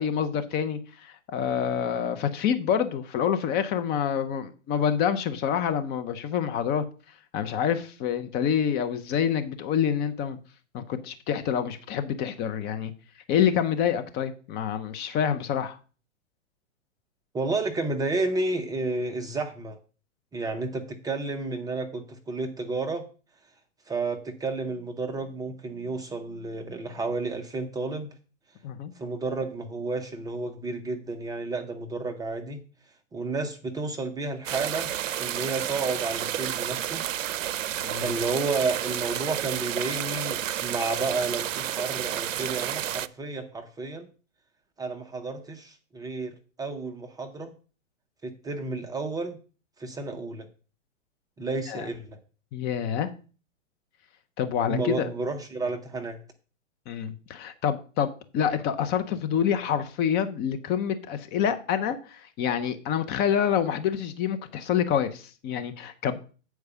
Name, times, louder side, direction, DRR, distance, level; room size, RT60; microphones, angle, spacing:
voice 1, 0.0-6.8 7.3-10.4 10.7-12.9 13.3-15.8 28.6-28.9 37.8-38.1 51.7-51.9 52.5-53.1 54.4-55.1 56.9-66.2, left 8 dB, 25° left, 0.7 m, -27 dB
voice 2, 17.3-19.8 20.3-23.0 23.9-28.1 28.9-32.6 33.1-34.9 35.2-37.0 37.9-44.1 44.8-47.5 48.2-49.4 49.8-50.5 51.4-52.2 54.7-56.2, right 3 dB, 10° right, 0.6 m, -31 dB
sound 1, 34.5-43.1, right 11 dB, 80° right, 0.6 m, -31 dB
8.5 x 4.7 x 6.7 m
hypercardioid pair, 130°, 38 cm